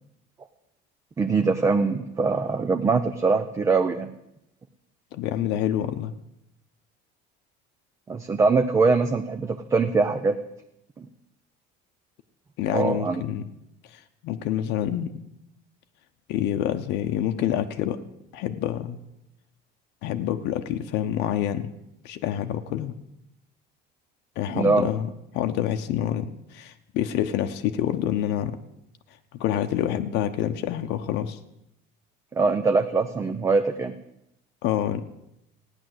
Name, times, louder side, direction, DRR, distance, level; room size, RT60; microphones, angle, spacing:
voice 1, 1.2-4.1 8.1-10.4 11.0-11.1 12.7-13.2 24.5-24.9 32.3-33.9, right 4 dB, 15° right, 8 dB, 0.5 m, -22 dB
voice 2, 5.1-6.1 12.6-13.5 13.9-15.1 16.3-18.0 18.3-19.0 20.0-21.7 22.0-22.9 24.4-25.1 25.3-28.6 29.4-31.4 34.6-35.0, left 11 dB, 60° left, 7 dB, 0.9 m, -27 dB
15.0 x 10.0 x 7.8 m, 0.83 s
cardioid pair, 175°, 20 cm